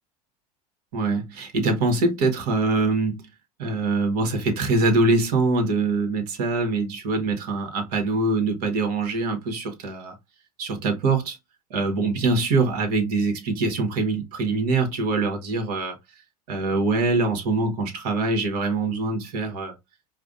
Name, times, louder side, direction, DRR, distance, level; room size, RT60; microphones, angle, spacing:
voice 1, 0.9-3.3 3.6-10.1 10.6-11.4 11.7-16.0 16.5-19.7, right 3 dB, 65° right, 1.4 m, -24 dB
4.8 x 2.3 x 2.5 m
hypercardioid pair, 85°, 20 cm